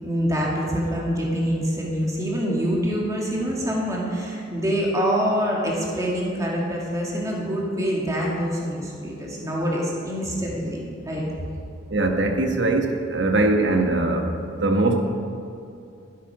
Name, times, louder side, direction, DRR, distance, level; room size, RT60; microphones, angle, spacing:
voice 1, 0.0-11.2, equal, 15° right, -3 dB, 2.2 m, -25 dB
voice 2, 11.9-15.0, right 2 dB, 65° right, 4 dB, 1.3 m, -21 dB
12.0 x 11.0 x 4.9 m, 2.5 s
head